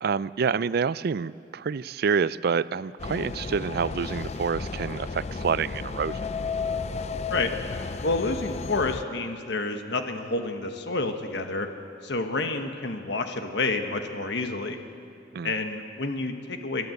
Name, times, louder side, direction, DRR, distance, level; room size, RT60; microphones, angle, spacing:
voice 1, 0.0-6.2 15.3-15.5, right 6 dB, 55° right, 18 dB, 0.4 m, -27 dB
sound 1, 3.0-9.0, left 4 dB, 35° left, 0.5 m, -33 dB
voice 2, 8.0-11.7 12.0-14.8 15.4-16.9, left 3 dB, 65° left, 6 dB, 1.3 m, -29 dB
27.0 x 13.0 x 7.9 m, 2.5 s
head